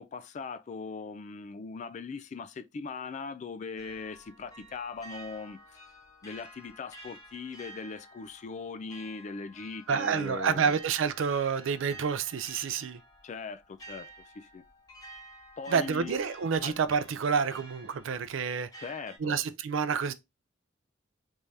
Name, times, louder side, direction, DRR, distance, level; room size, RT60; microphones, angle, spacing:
voice 1, 0.0-5.8 6.2-10.7 13.2-14.6 15.6-16.1 16.6-16.8 18.8-19.4, left 4 dB, 35° left, 0.3 m, -40 dB
sound 1, 3.8-19.2, right 2 dB, 20° left, 0.8 m, -51 dB
voice 2, 9.9-13.0 15.7-18.8 19.2-20.1, right 6 dB, 75° right, 0.4 m, -28 dB
3.5 x 3.2 x 2.7 m
head